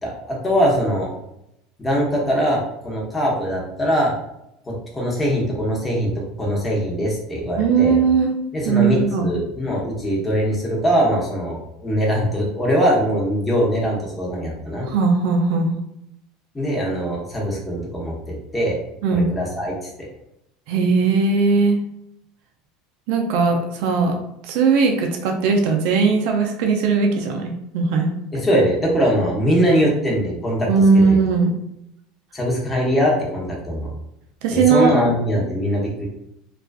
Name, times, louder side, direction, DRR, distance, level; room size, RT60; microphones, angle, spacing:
voice 1, 0.0-1.1 1.8-4.1 4.6-6.1 6.4-8.0 8.5-14.9 16.5-18.1 18.5-18.8 19.1-19.7 20.0-20.1 28.3-30.7 31.1-31.2 32.3-33.9 34.5-36.1, equal, 15° left, -3 dB, 0.8 m, -21 dB
voice 2, 7.6-8.3 8.6-9.3 14.9-15.7 19.0-19.2 20.7-21.8 23.1-24.1 24.5-28.1 30.7-31.6 34.4-35.1, right 4 dB, 70° right, 3 dB, 0.4 m, -18 dB
2.3 x 2.3 x 2.3 m, 0.81 s
hypercardioid pair, 95°, 0 cm